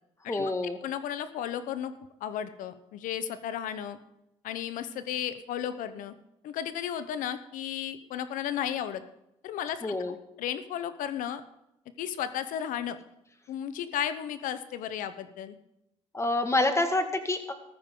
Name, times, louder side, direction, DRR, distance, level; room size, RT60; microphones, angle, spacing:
voice 1, 0.3-0.8 9.8-10.2 16.1-17.5, left 2 dB, 20° left, 6 dB, 2.0 m, -27 dB
voice 2, 0.8-1.9 2.2-4.0 4.4-6.1 6.4-9.0 9.4-9.9 10.4-11.4 12.0-13.0 13.5-15.6, left 10 dB, 80° left, 12 dB, 1.0 m, -34 dB
14.5 x 13.5 x 3.9 m, 0.85 s
supercardioid pair, 75°, 14 cm